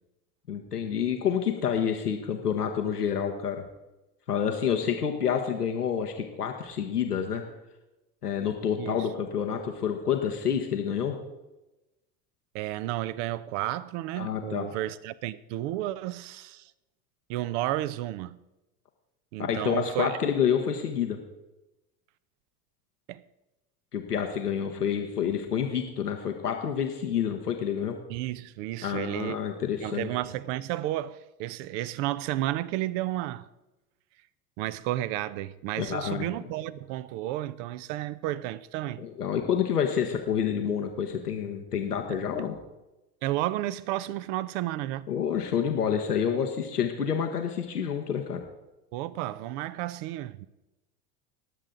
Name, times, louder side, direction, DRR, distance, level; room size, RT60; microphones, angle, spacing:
voice 1, 0.5-3.6 4.3-7.4 8.2-11.2 14.2-14.7 19.4-21.2 23.9-28.0 28.8-30.1 35.8-36.3 39.0-42.6 45.1-48.4, left 8 dB, 90° left, 1.3 m, -28 dB
voice 2, 8.8-9.1 12.5-16.7 17.3-18.4 19.3-20.2 23.1-23.2 28.1-29.4 29.8-33.5 34.6-39.0 42.1-42.5 43.2-45.1 48.9-50.5, right 15 dB, 50° right, 0.7 m, -32 dB
20.5 x 7.6 x 3.8 m
hypercardioid pair, 80°, 45 cm